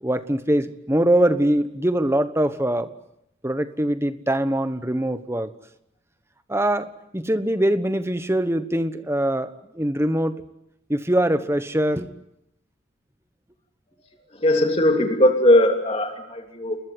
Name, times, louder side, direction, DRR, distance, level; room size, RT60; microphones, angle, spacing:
voice 1, 0.0-2.9 3.4-5.5 6.5-10.4 10.9-12.1, right 1 dB, 10° right, 11 dB, 1.2 m, -23 dB
voice 2, 14.4-16.8, left 1 dB, 30° left, 4 dB, 3.0 m, -19 dB
29.0 x 21.0 x 9.4 m, 0.81 s
head